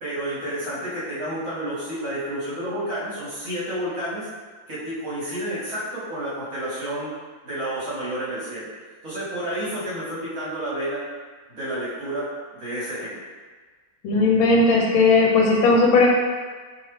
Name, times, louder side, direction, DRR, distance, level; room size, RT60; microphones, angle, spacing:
voice 1, 0.0-4.3 4.7-7.1 7.4-8.7 9.0-11.0 11.5-12.3 12.5-13.2, right 1 dB, 50° right, -9 dB, 1.2 m, -30 dB
voice 2, 14.0-16.1, left 3 dB, 85° left, -2 dB, 1.4 m, -17 dB
3.2 x 3.1 x 3.0 m, 1.5 s
omnidirectional pair, 2.1 m